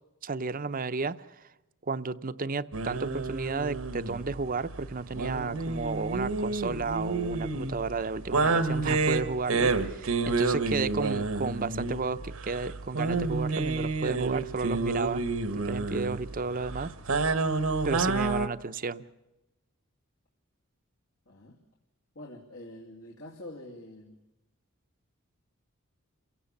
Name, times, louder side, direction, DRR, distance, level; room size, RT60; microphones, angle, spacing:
voice 1, 0.2-1.4 1.9-15.2 15.5-16.9 17.8-19.0, right 4 dB, 40° right, 13 dB, 0.7 m, -33 dB
sound 1, 2.7-18.5, right 3 dB, 80° right, 1.3 m, -29 dB
voice 2, 5.2-5.7 10.2-10.5 16.4-16.7 21.3-21.6 22.1-24.2, left 1 dB, 75° left, -1 dB, 2.6 m, -47 dB
28.5 x 17.0 x 7.1 m, 0.99 s
head